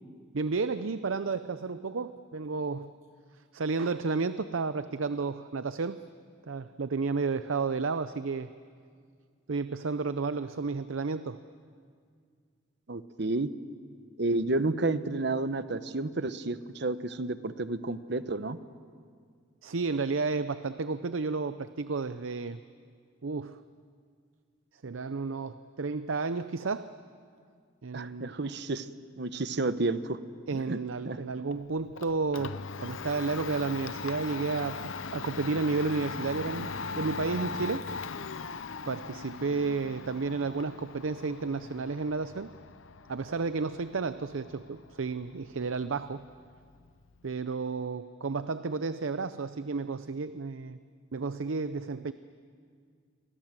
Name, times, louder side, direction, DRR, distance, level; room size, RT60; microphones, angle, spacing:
voice 1, 0.3-2.9 3.5-6.0 6.4-8.5 9.5-11.4 19.6-22.6 23.2-23.6 24.8-26.9 27.8-28.4 30.5-37.9 38.9-42.5 43.1-46.3 47.2-50.8 51.1-52.1, right 4 dB, 90° right, 12 dB, 0.6 m, -32 dB
voice 2, 12.9-13.5 14.2-18.6 27.9-28.9 29.2-30.2 30.5-30.8 31.0-31.2, right 2 dB, 60° right, 12 dB, 1.0 m, -31 dB
Domestic sounds home sounds, 31.5-47.3, left 4 dB, 85° left, 0.8 m, -40 dB
29.5 x 24.5 x 7.5 m, 2.1 s
head